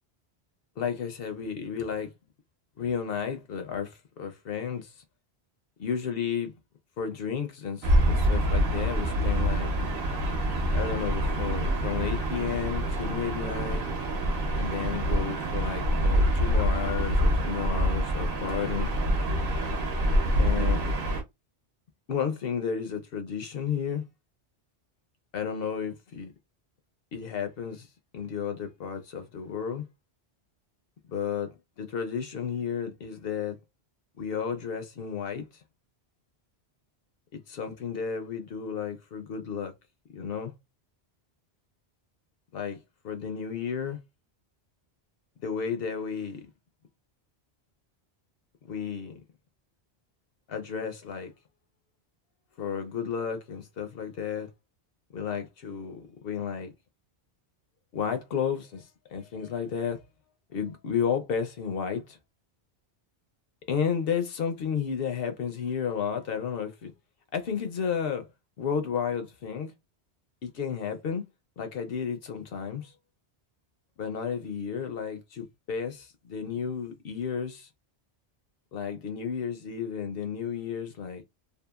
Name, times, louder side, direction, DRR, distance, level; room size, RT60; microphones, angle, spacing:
voice 1, 0.8-2.1 2.8-5.0 5.8-6.5 7.0-9.7 10.7-13.9 14.5-18.9 20.4-20.9 22.1-24.0 25.3-26.3 27.1-27.9 28.1-29.8 31.1-33.6 34.2-35.6 37.3-39.7 40.1-40.5 42.5-42.8 43.0-44.0 45.4-46.5 48.6-49.2 50.5-51.3 52.6-54.5 55.1-56.7 57.9-60.0 60.5-62.2 63.7-66.9 67.3-68.3 68.6-69.7 70.4-71.2 71.6-72.9 74.0-77.7 78.7-81.2, left 7 dB, 65° left, 0.7 m, -32 dB
Gull seagull / Ocean, 7.8-21.2, equal, 60° right, 0.9 m, -26 dB
2.7 x 2.3 x 2.3 m
omnidirectional pair, 1.1 m